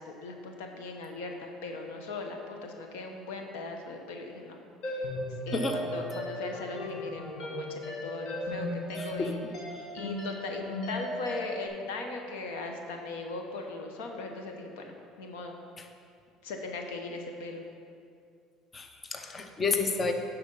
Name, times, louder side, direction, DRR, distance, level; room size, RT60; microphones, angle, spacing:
voice 1, 0.0-4.6 4.8-5.0 5.5-9.4 9.9-15.6 16.4-17.6, left 3 dB, 90° left, 3 dB, 0.9 m, -39 dB
sound 1, 4.8-11.7, left 1 dB, 65° left, 1.7 m, -37 dB
voice 2, 9.0-9.3 15.8-15.9 18.7-20.1, left 3 dB, 30° left, 5 dB, 0.7 m, -30 dB
11.0 x 4.2 x 5.4 m, 2.4 s
supercardioid pair, 95°, 0 cm